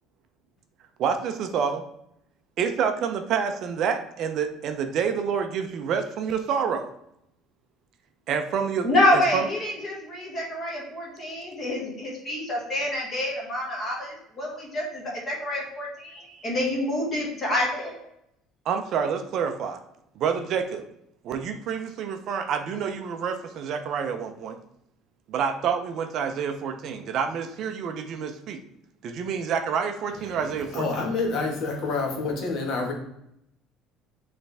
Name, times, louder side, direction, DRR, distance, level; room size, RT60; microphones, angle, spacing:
voice 1, 1.0-1.8 2.6-6.9 8.3-9.4 16.3-16.4 18.7-19.8 20.2-20.9 21.2-24.6 25.3-28.6 29.0-30.8, right 7 dB, 40° right, 7 dB, 0.5 m, -28 dB
voice 2, 8.8-18.0, left 1 dB, 20° left, -2 dB, 1.6 m, -27 dB
voice 3, 30.1-32.9, left 3 dB, 45° left, 2 dB, 1.3 m, -28 dB
8.7 x 3.3 x 3.4 m, 0.78 s
cardioid pair, 175°, 0 cm